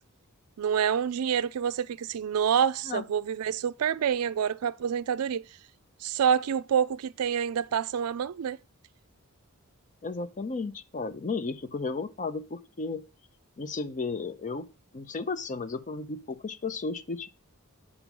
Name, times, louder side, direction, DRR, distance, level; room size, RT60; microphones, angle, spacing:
voice 1, 0.6-5.4 6.0-8.6, right 8 dB, 75° right, 0.4 m, -27 dB
voice 2, 10.0-13.0 13.6-14.7 14.9-17.3, left 4 dB, 35° left, 0.5 m, -34 dB
6.0 x 5.0 x 5.3 m
head